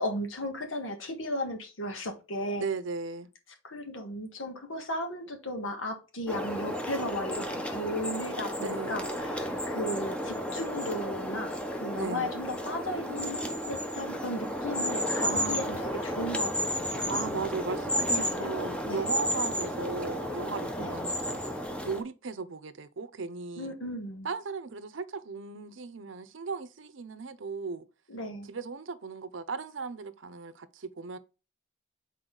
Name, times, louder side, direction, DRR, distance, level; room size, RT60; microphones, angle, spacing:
voice 1, 0.0-2.6 3.6-15.6 16.0-16.6 18.1-18.5 18.8-19.0 20.8-20.9 23.6-24.3 28.1-28.5, left 1 dB, 85° left, 1.7 m, -35 dB
voice 2, 2.6-3.3 8.6-9.1 11.9-12.3 15.2-15.8 17.1-21.4 21.8-23.7 24.2-27.8 28.5-31.2, right 4 dB, 75° right, 0.7 m, -36 dB
sound 1, 6.3-22.0, equal, 5° left, 0.8 m, -32 dB
6.3 x 4.2 x 3.8 m
head